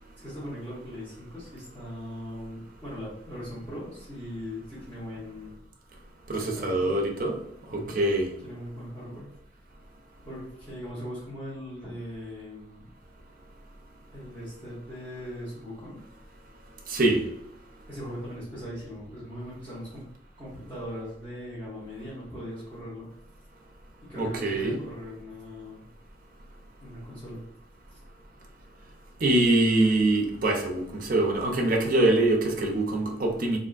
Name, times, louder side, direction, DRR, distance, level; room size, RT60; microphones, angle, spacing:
voice 1, 0.2-5.5 6.3-6.9 7.7-8.0 8.4-9.3 10.2-12.9 14.1-16.0 17.9-20.0 20.4-23.1 24.1-25.8 26.8-27.4, equal, 10° left, -11 dB, 1.0 m, -39 dB
voice 2, 6.3-7.3 7.7-8.3 16.9-17.2 24.2-24.8 29.2-33.6, right 2 dB, 45° right, 2 dB, 0.5 m, -24 dB
3.4 x 2.5 x 2.4 m, 0.76 s
head